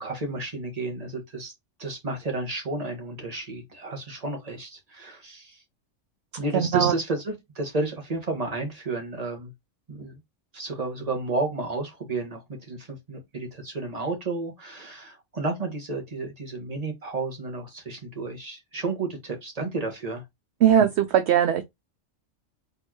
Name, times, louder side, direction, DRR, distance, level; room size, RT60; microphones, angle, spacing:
voice 1, 0.0-1.5 1.8-5.6 6.4-9.5 9.9-10.2 10.5-20.2, right 2 dB, 30° right, 1.5 m, -32 dB
voice 2, 6.5-6.9 20.6-21.6, right 9 dB, 65° right, 0.8 m, -20 dB
4.4 x 3.5 x 2.9 m
omnidirectional pair, 1.3 m